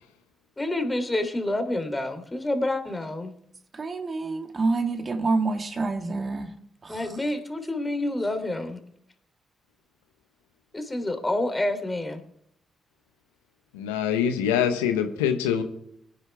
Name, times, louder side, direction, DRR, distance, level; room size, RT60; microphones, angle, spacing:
voice 1, 0.6-3.3 6.9-8.8 10.7-12.2, left 1 dB, 25° left, 3.2 m, -28 dB
voice 2, 3.7-6.5 6.8-7.0, right 3 dB, 45° right, 2.0 m, -27 dB
voice 3, 13.7-15.6, left 8 dB, 90° left, 1.0 m, -24 dB
23.5 x 10.5 x 3.5 m
hypercardioid pair, 40°, 0 cm